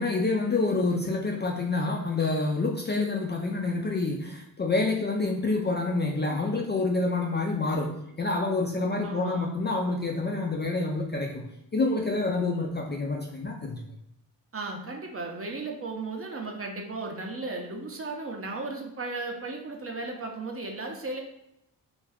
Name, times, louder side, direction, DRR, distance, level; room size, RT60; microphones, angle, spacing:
voice 1, 0.0-7.9 8.2-11.4 11.7-13.8, left 3 dB, 25° left, 0 dB, 0.4 m, -27 dB
voice 2, 9.0-9.5 14.5-21.2, right 3 dB, 30° right, 2 dB, 0.6 m, -35 dB
2.4 x 2.2 x 3.4 m, 0.82 s
supercardioid pair, 50°, 43 cm